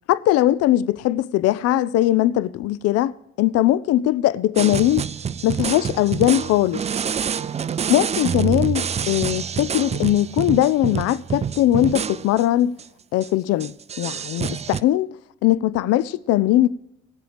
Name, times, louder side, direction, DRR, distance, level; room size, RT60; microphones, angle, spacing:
voice 1, 0.1-5.1 5.4-6.8 7.9-12.7 13.1-15.1 15.4-16.7, left 14 dB, 55° left, 0.5 m, -20 dB
sound 1, 4.6-12.4 12.8-12.9 13.2-13.3 13.6-14.8, right 7 dB, 25° right, 0.4 m, -27 dB
18.0 x 7.7 x 5.0 m
hypercardioid pair, 45°, 29 cm